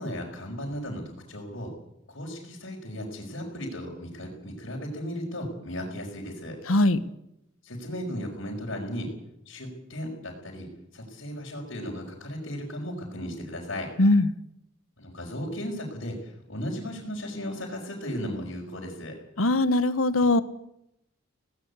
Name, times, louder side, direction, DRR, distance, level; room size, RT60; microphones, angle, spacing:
voice 1, 0.0-1.7 2.1-6.6 7.6-9.1 9.4-13.9 15.0-19.1, equal, 65° left, -5 dB, 5.0 m, -36 dB
voice 2, 6.7-7.0 14.0-14.3 19.4-20.4, left 2 dB, 90° left, 14 dB, 1.3 m, -21 dB
18.5 x 18.0 x 8.3 m, 0.80 s
head